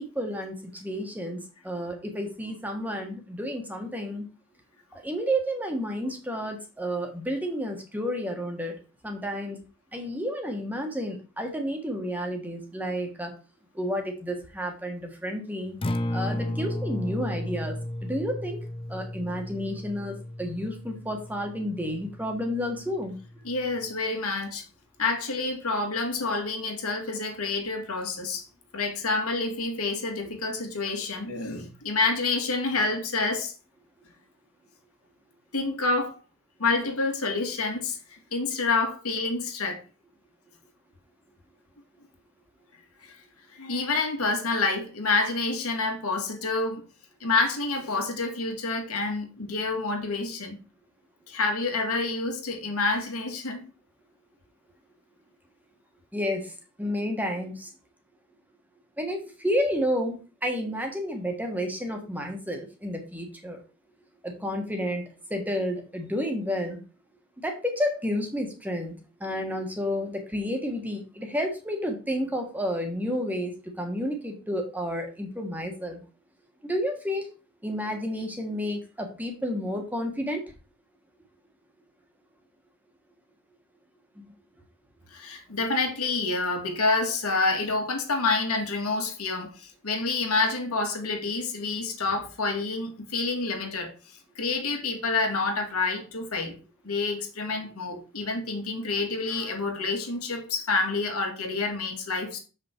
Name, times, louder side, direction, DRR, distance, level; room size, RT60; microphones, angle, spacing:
voice 1, 0.0-4.3 4.9-8.8 9.0-9.6 9.9-13.3 13.7-15.8 16.1-18.6 18.9-23.2 56.1-57.7 59.0-63.6 64.2-66.8 67.4-68.9 69.2-73.5 73.8-76.0 76.6-77.3 77.6-80.4 84.2-84.3, equal, 5° right, 1.3 m, -31 dB
Acoustic guitar, 15.7-23.9, left 1 dB, 25° left, 0.5 m, -34 dB
voice 2, 23.4-24.7 25.0-28.5 28.7-33.5 35.5-36.1 36.6-38.0 38.3-39.8 43.0-43.2 43.5-46.8 47.2-50.6 51.3-53.6 85.1-93.9 94.4-96.6 96.8-102.4, left 3 dB, 75° left, 2.0 m, -28 dB
7.0 x 5.7 x 4.4 m
head